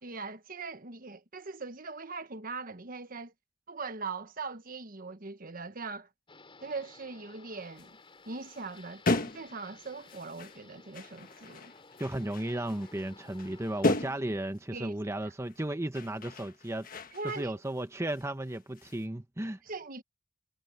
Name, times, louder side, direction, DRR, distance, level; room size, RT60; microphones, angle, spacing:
voice 1, 0.0-3.3 3.7-6.1 6.6-8.0 8.3-11.7 14.7-14.9 17.1-17.6 19.7-20.0, right 4 dB, 50° right, 1.2 m, -41 dB
sound 1, 6.3-14.0, left 3 dB, 30° left, 6.3 m, -55 dB
sound 2, 7.8-7.9 8.3-10.6 10.9-14.6 15.5-15.7 15.9-17.8 18.1-19.0, left 2 dB, 50° left, 1.4 m, -36 dB
voice 2, 12.0-16.9 17.2-19.6, right 1 dB, 15° right, 0.9 m, -34 dB
head